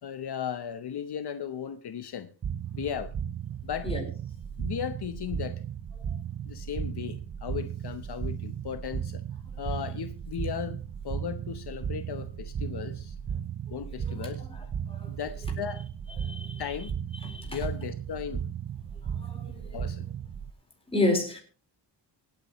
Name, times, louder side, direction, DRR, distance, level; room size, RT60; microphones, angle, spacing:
voice 1, 0.0-2.3 2.7-3.1 3.6-3.9 4.6-5.6 6.4-9.2 9.6-10.8 11.0-13.2 13.7-14.5 15.1-15.8 16.6-16.9 17.5-18.4 19.7-20.0, left 8 dB, 65° left, 1.0 m, -36 dB
sound 1, 2.4-20.5, right 8 dB, 35° right, 0.5 m, -35 dB
voice 2, 14.9-15.2 16.2-16.6 17.2-17.6 19.2-19.8 20.9-21.4, left 2 dB, 15° left, 4.3 m, -30 dB
25.5 x 9.0 x 3.0 m
wide cardioid pair, 175°, 42 cm